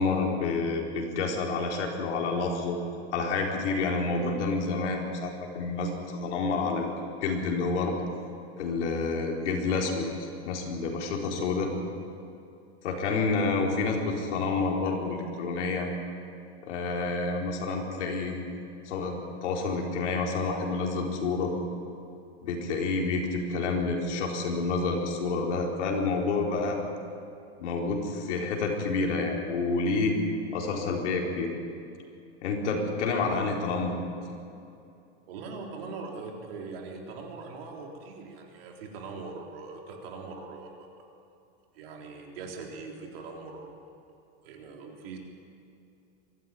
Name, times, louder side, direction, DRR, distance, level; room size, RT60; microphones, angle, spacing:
voice 1, 0.0-2.8 3.1-6.9 7.2-8.0 8.6-10.1 10.5-11.7 12.8-15.9 16.6-18.4 18.9-19.1 19.4-21.5 22.4-26.8 27.6-30.2 30.5-31.5 32.4-33.9, left 3 dB, 70° left, 0 dB, 4.5 m, -28 dB
voice 2, 35.3-40.9 41.7-43.7 44.4-45.2, right 4 dB, 55° right, 1 dB, 3.8 m, -41 dB
23.5 x 14.5 x 9.3 m, 2.7 s
supercardioid pair, 175°, 36 cm